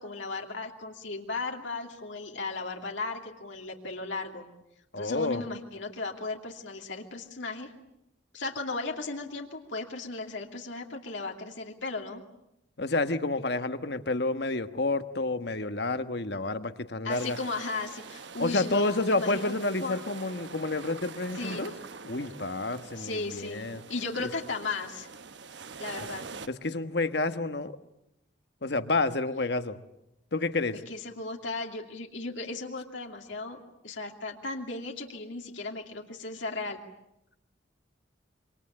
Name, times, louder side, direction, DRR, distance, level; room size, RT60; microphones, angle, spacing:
voice 1, 0.0-4.5 5.0-7.7 8.3-12.2 17.0-19.5 19.8-20.0 21.3-21.7 23.0-25.1 25.8-26.3 30.9-36.8, left 3 dB, 75° left, 2 dB, 2.8 m, -36 dB
voice 2, 4.9-5.4 12.8-17.4 18.4-21.7 22.0-23.8 26.5-27.8 28.6-29.8 30.3-30.8, left 2 dB, 55° left, 10 dB, 1.4 m, -29 dB
sound 1, 17.1-26.5, right 4 dB, 65° right, 1.1 m, -45 dB
27.0 x 25.0 x 8.8 m, 0.84 s
head